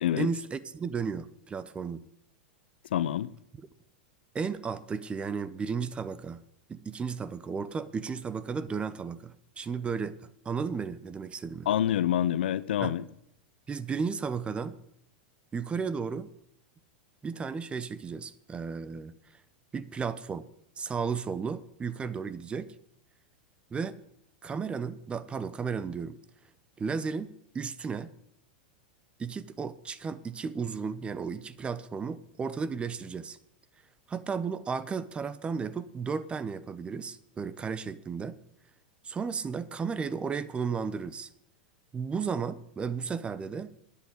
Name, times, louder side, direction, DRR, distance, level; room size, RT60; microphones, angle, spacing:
voice 1, 0.2-2.0 4.3-6.4 6.7-11.7 12.8-13.0 13.7-14.8 15.5-16.3 17.2-19.1 19.7-20.5 20.8-22.7 23.7-24.0 24.4-26.2 26.8-28.1 29.2-33.4 34.1-38.4 39.0-41.3 41.9-43.7, right 5 dB, 20° right, 0.9 m, -34 dB
voice 2, 2.9-3.3 11.7-13.0, left 11 dB, 75° left, 0.7 m, -26 dB
10.0 x 8.7 x 9.7 m
hypercardioid pair, 115°, 6 cm